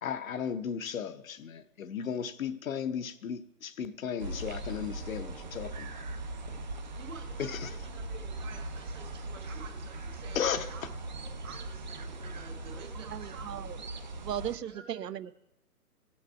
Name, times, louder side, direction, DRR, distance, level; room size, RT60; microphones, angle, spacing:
voice 1, 0.0-5.9 7.4-7.7 10.3-10.7, left 7 dB, 60° left, 0.7 m, -35 dB
sound 1, 4.2-14.6, right 2 dB, 30° right, 0.5 m, -40 dB
voice 2, 6.9-10.9 11.4-13.6 14.6-15.3, right 5 dB, 50° right, 1.6 m, -50 dB
voice 3, 13.0-13.8 14.2-15.3, right 10 dB, 90° right, 0.6 m, -37 dB
16.5 x 7.2 x 4.6 m
hypercardioid pair, 145°, 47 cm